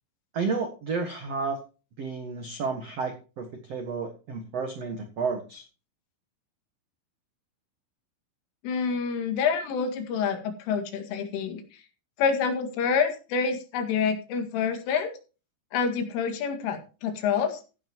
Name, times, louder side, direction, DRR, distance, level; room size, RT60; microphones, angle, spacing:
voice 1, 0.3-1.6 2.0-5.7, right 4 dB, 85° right, 5 dB, 1.4 m, -31 dB
voice 2, 8.6-11.6 12.2-15.1 15.7-17.6, left 6 dB, 85° left, 6 dB, 4.6 m, -27 dB
15.5 x 10.5 x 3.0 m, 0.33 s
omnidirectional pair, 5.5 m